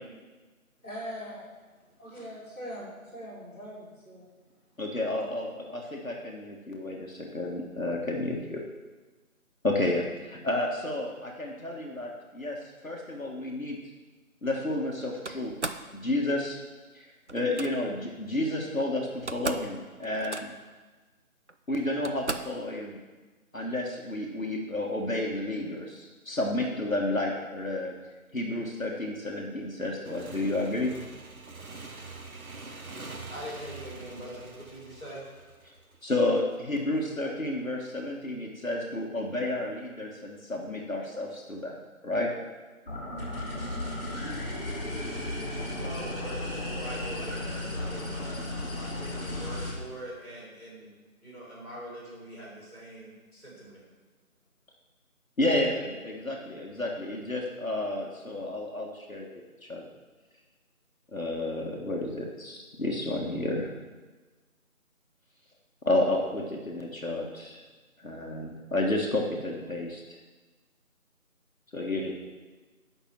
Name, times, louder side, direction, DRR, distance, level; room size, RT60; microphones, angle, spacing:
voice 1, 0.8-1.5 1.9-4.3 4.7-4.8 5.1-5.4, equal, 5° right, -25 dB, 2.5 m, -42 dB
voice 2, 4.8-8.6 9.6-13.8 14.4-15.5 15.9-16.6 16.9-17.1 17.3-20.5 21.7-23.0 23.5-27.9 28.3-30.9 36.0-42.3 55.4-59.3 59.7-59.8 61.1-63.7 65.9-67.6 68.0-70.0 71.7-72.1, left 1 dB, 65° left, 0 dB, 1.8 m, -31 dB
Slam, 15.2-15.9 17.3-17.7 18.8-18.9 19.1-19.7 20.0-20.7 21.5-21.6 22.0-22.6, right 3 dB, 55° right, 0.6 m, -36 dB
Motorcycle / Engine, 30.0-36.4, right 3 dB, 75° right, 1.2 m, -45 dB
voice 3, 33.0-35.2 45.1-45.3 45.6-50.9 51.2-53.8, equal, 10° left, -17 dB, 4.0 m, -43 dB
sound 1, 42.9-49.7, left 1 dB, 40° left, 3.6 m, -34 dB
8.8 x 6.2 x 7.6 m, 1.3 s
figure-of-eight pair, 170°, 43 cm